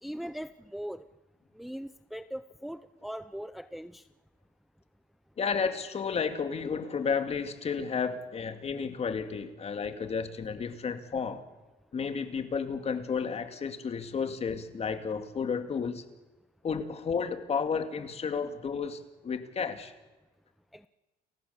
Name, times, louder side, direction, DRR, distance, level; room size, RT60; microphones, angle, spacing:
voice 1, 0.0-1.1 1.5-4.1 20.7-20.9, equal, ahead, 12 dB, 0.6 m, -40 dB
voice 2, 5.4-11.4 11.9-16.0 16.6-19.9, left 6 dB, 40° left, 8 dB, 2.2 m, -32 dB
30.0 x 14.5 x 7.0 m, 1.1 s
cardioid pair, 110°, 17 cm